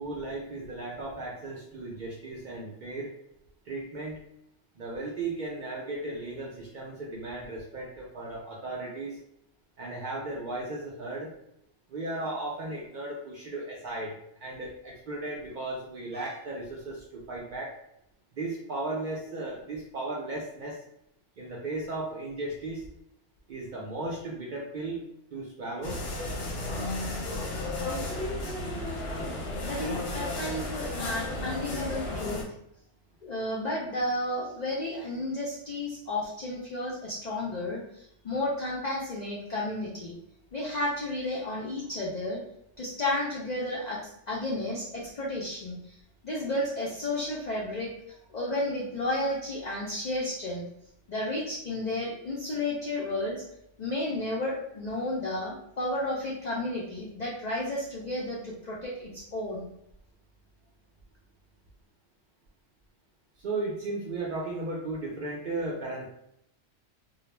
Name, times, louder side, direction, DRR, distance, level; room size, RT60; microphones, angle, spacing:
voice 1, 0.0-3.1 3.7-4.2 4.8-9.2 9.8-11.3 11.9-17.7 18.3-20.8 21.4-22.8 23.5-25.0 25.3-26.0 63.4-66.1, right 2 dB, 70° right, -4 dB, 0.4 m, -35 dB
sound 1, 25.8-32.4, left 1 dB, 60° left, 0.7 m, -33 dB
voice 2, 29.6-32.4 33.2-40.1 40.5-42.4 42.8-46.0 46.2-47.9 48.3-50.6 51.1-53.4 53.8-59.7, left 1 dB, 80° left, -5 dB, 0.3 m, -32 dB
2.3 x 2.0 x 3.1 m, 0.75 s
omnidirectional pair, 1.4 m